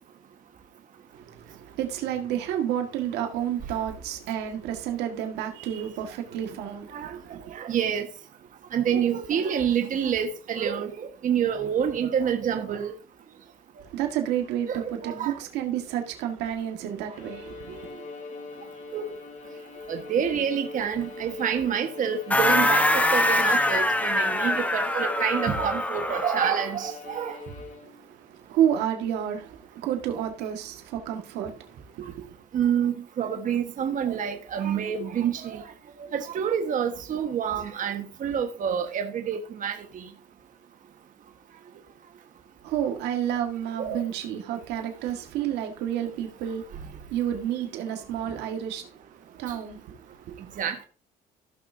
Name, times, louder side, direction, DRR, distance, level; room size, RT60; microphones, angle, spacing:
voice 1, 1.1-7.5 13.8-17.9 27.8-32.4 42.6-50.6, right 10 dB, 90° right, 1.8 m, -30 dB
voice 2, 7.5-8.0 8.7-12.9 14.7-15.4 17.7-17.8 18.9-19.0 19.9-22.8 23.1-27.3 32.5-35.6 36.1-40.1 43.8-44.0 50.6-50.9, right 8 dB, 50° right, 1.4 m, -27 dB
Bowed string instrument, 17.1-28.1, left 3 dB, 45° left, 2.5 m, -42 dB
sound 1, 22.3-26.7, left 1 dB, 10° left, 1.1 m, -24 dB
16.0 x 5.9 x 2.7 m
cardioid pair, 110°, 17 cm